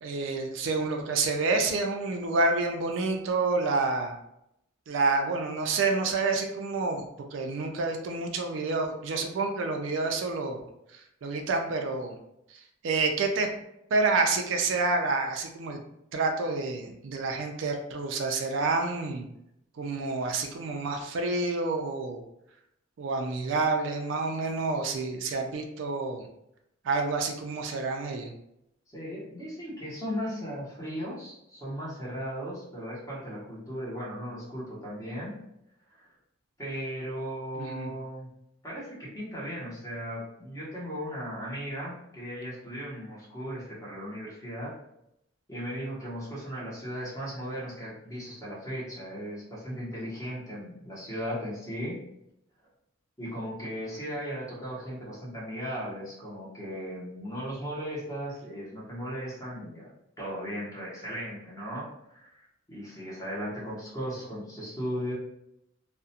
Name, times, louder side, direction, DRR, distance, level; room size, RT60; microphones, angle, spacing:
voice 1, 0.0-4.2 4.9-7.0 7.3-10.6 11.2-12.2 12.8-13.5 13.9-15.8 16.1-19.3 19.8-22.2 23.0-26.3 26.8-28.3 37.6-37.9, right 3 dB, 70° right, 4 dB, 0.4 m, -28 dB
voice 2, 28.9-35.4 35.9-36.1 36.6-38.3 38.6-44.8 45.5-52.0 53.2-59.9 60.2-65.1, equal, 15° left, -6 dB, 0.9 m, -37 dB
2.4 x 2.1 x 2.7 m, 0.80 s
head